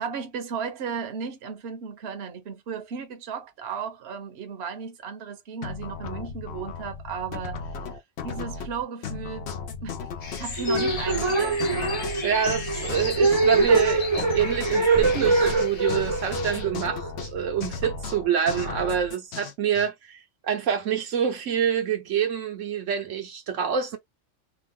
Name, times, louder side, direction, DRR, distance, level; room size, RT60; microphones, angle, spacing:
voice 1, 0.0-8.0 8.2-9.5 9.8-10.1 10.4-11.7, right 6 dB, 60° right, 1.0 m, -35 dB
sound 1, 5.6-19.9, left 5 dB, 65° left, 0.9 m, -35 dB
sound 2, 10.2-16.6, left 4 dB, 40° left, 0.6 m, -36 dB
sound 3, 10.6-17.8, right 3 dB, 30° right, 0.5 m, -24 dB
voice 2, 12.2-24.0, right 8 dB, 80° right, 1.2 m, -26 dB
3.0 x 2.2 x 3.5 m
omnidirectional pair, 1.3 m